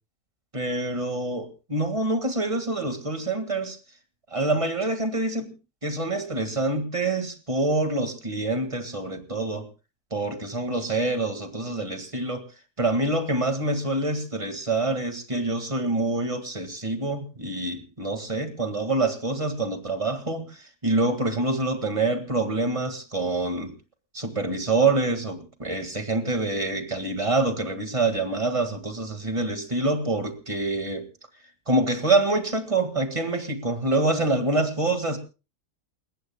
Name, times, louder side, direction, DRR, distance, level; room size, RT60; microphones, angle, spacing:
voice 1, 0.5-3.8 4.3-5.5 5.8-9.7 10.1-12.4 12.8-23.7 24.1-31.1 31.7-35.2, right 2 dB, 20° right, 1.9 m, -26 dB
29.5 x 14.5 x 2.2 m
omnidirectional pair, 1.7 m